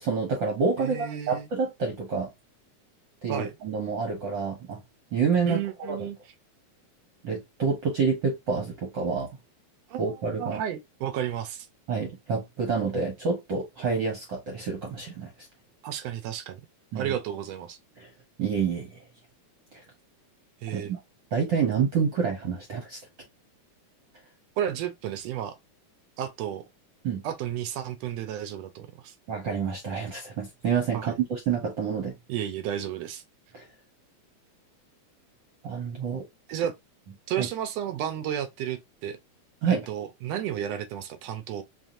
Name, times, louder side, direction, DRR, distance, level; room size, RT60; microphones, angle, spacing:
voice 1, 0.0-2.3 3.2-4.8 5.1-5.6 5.9-6.0 7.2-9.3 10.0-10.6 11.9-15.3 16.9-17.1 18.0-18.1 18.4-19.0 20.7-21.0 21.3-23.0 27.0-27.2 29.3-32.1 33.5-33.6 35.6-36.2 37.4-37.5 39.6-39.8, right 5 dB, 60° right, 1.3 m, -28 dB
voice 2, 0.8-1.5 3.3-3.6 5.5-6.3 9.9-11.7 15.8-16.6 16.9-17.8 20.6-20.9 24.6-25.6 26.2-26.6 27.2-29.1 30.9-31.1 32.3-33.2 36.5-36.8 37.3-39.2 39.7-41.6, right 10 dB, 80° right, 1.5 m, -32 dB
4.9 x 2.9 x 2.6 m
omnidirectional pair, 3.4 m